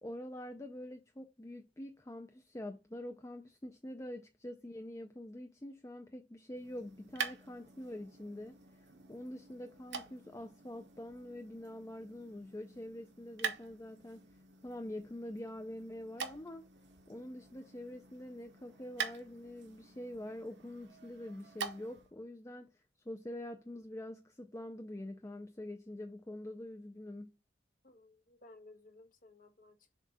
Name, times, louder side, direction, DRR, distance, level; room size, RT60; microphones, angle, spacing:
voice 1, 0.0-14.3 14.6-16.6 17.1-22.7 23.1-27.4, left 1 dB, 20° left, 0.5 m, -45 dB
sound 1, 6.5-22.1, right 6 dB, 75° right, 1.0 m, -46 dB
voice 2, 27.8-29.9, left 2 dB, 50° left, 1.1 m, -58 dB
7.3 x 2.5 x 5.5 m
head